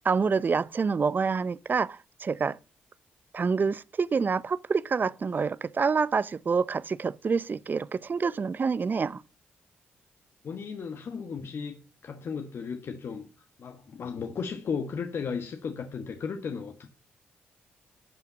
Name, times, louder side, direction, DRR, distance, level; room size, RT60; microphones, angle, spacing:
voice 1, 0.0-2.6 3.3-9.2, right 5 dB, 40° right, 0.6 m, -27 dB
voice 2, 10.4-16.9, left 6 dB, 60° left, 1.3 m, -35 dB
12.5 x 5.8 x 6.8 m
hypercardioid pair, 45°, 5 cm